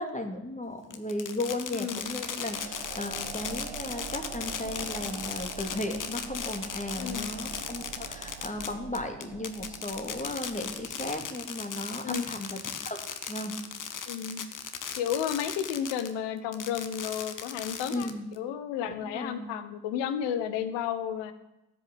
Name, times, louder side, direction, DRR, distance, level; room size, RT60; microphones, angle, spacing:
voice 1, 0.0-12.6 12.8-13.0 13.3-13.6 17.9-18.3 19.1-19.5, left 1 dB, 15° left, 5 dB, 2.9 m, -35 dB
Fireworks, 0.9-16.1 16.5-18.4, left 7 dB, 45° left, 1.5 m, -37 dB
voice 2, 1.7-2.1 7.0-7.3 12.0-12.3 14.1-14.5 15.0-18.1 18.4-21.3, left 9 dB, 70° left, 12 dB, 1.4 m, -32 dB
sound 1, 2.0-11.3, right 8 dB, 55° right, 1.2 m, -44 dB
14.0 x 6.8 x 8.8 m, 0.96 s
hypercardioid pair, 50°, 45 cm